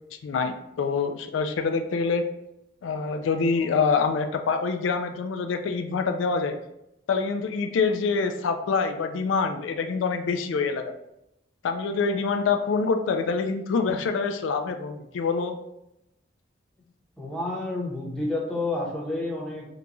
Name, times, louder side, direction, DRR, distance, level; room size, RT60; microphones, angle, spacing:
voice 1, 0.2-2.2 2.8-6.6 7.1-11.0 11.6-15.6, left 5 dB, 90° left, 6 dB, 0.3 m, -26 dB
voice 2, 17.2-19.7, left 2 dB, 5° left, -4 dB, 0.8 m, -30 dB
3.8 x 2.3 x 2.9 m, 0.85 s
head